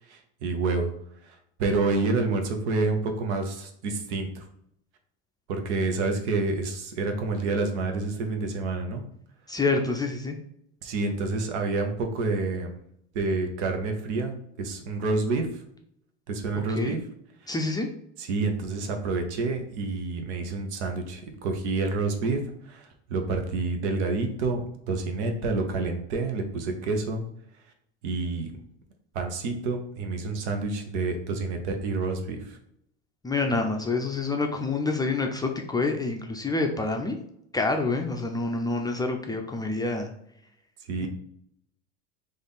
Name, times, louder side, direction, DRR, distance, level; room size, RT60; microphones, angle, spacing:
voice 1, 0.1-0.9 1.2-4.5 5.5-9.0 10.8-12.7 13.1-15.6 16.3-17.0 17.4-17.5 18.2-27.2 28.0-28.5 29.1-32.6 40.9-41.1, right 3 dB, 75° right, 5 dB, 0.9 m, -28 dB
voice 2, 9.5-10.4 16.8-17.0 17.5-17.9 33.2-37.2 37.5-40.1 41.0-41.1, left 3 dB, 10° left, 2 dB, 0.4 m, -27 dB
3.3 x 2.5 x 4.0 m, 0.73 s
hypercardioid pair, 85°, 35 cm